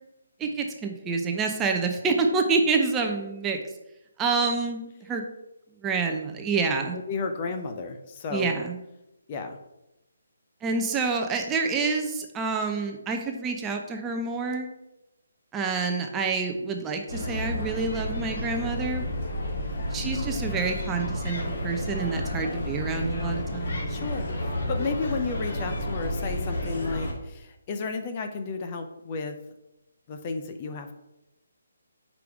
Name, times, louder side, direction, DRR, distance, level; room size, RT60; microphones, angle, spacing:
voice 1, 0.4-3.6 4.2-5.2 5.8-7.0 8.3-8.8 10.6-14.7 15.5-19.1 19.9-23.9, right 4 dB, 15° right, 2 dB, 0.7 m, -27 dB
voice 2, 6.9-8.5 9.3-9.6 23.9-29.3 30.1-30.9, left 4 dB, 30° left, 6 dB, 0.7 m, -33 dB
sound 1, 17.1-27.1, left 1 dB, 55° left, 2.0 m, -31 dB
5.1 x 4.8 x 4.7 m, 0.92 s
figure-of-eight pair, 145°, 0 cm